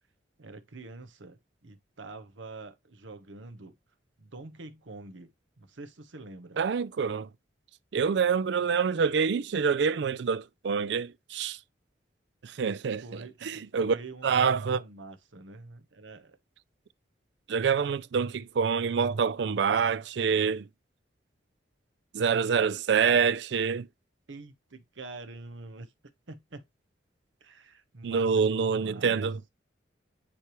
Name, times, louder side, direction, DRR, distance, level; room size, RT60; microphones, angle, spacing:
voice 1, 0.4-3.7 4.2-6.6 13.0-13.4 13.8-16.4 24.3-25.9 26.3-26.6 27.4-29.3, right 3 dB, 85° right, 1.0 m, -45 dB
voice 2, 6.6-7.3 7.9-11.6 12.4-14.0 14.2-14.8 17.5-20.7 22.1-23.9 28.0-29.4, right 6 dB, 65° right, 0.4 m, -26 dB
9.7 x 3.3 x 3.0 m
head